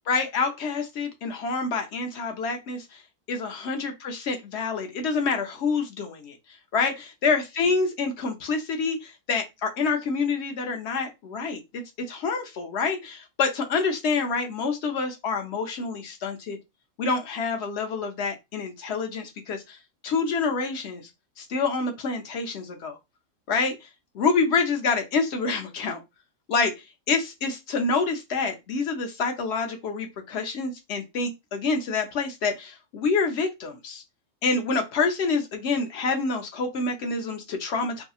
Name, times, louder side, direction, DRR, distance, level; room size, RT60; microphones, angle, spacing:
voice 1, 0.1-3.0 3.3-6.3 6.7-11.8 12.1-16.6 17.0-19.8 20.0-21.0 21.4-22.9 23.5-23.8 24.1-26.0 26.5-26.7 27.1-34.0 34.4-38.0, left 4 dB, 60° left, 0.8 m, -27 dB
2.7 x 2.6 x 2.3 m
omnidirectional pair, 1.4 m